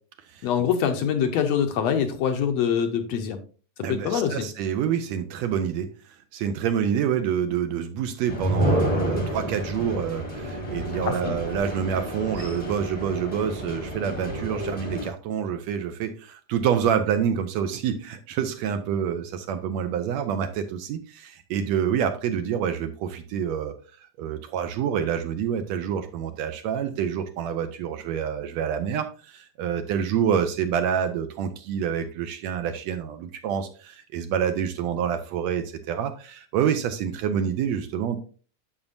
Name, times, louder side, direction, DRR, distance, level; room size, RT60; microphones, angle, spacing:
voice 1, 0.4-3.4 3.9-4.5 11.0-11.4, left 8 dB, 75° left, 6 dB, 1.7 m, -24 dB
voice 2, 3.8-5.9 6.3-38.2, right 8 dB, 75° right, 8 dB, 1.7 m, -27 dB
sound 1, 8.3-15.1, equal, 25° left, 0.8 m, -29 dB
8.7 x 7.0 x 2.6 m, 0.38 s
omnidirectional pair, 3.4 m